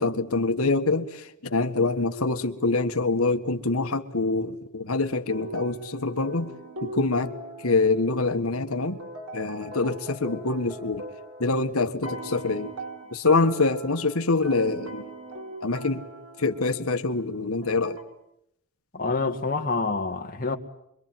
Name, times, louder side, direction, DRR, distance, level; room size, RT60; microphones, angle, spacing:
voice 1, 0.0-6.5 6.8-7.3 7.6-9.0 9.3-11.1 11.4-12.7 13.1-15.1 15.6-16.0 16.4-18.0, left 3 dB, 70° left, 1.7 m, -25 dB
sound 1, 5.3-8.3 8.7-11.7 12.0-17.0 17.6-18.0, right 1 dB, 90° right, 6.2 m, -39 dB
voice 2, 18.9-20.6, left 3 dB, 40° left, 2.2 m, -27 dB
25.5 x 23.5 x 9.3 m
head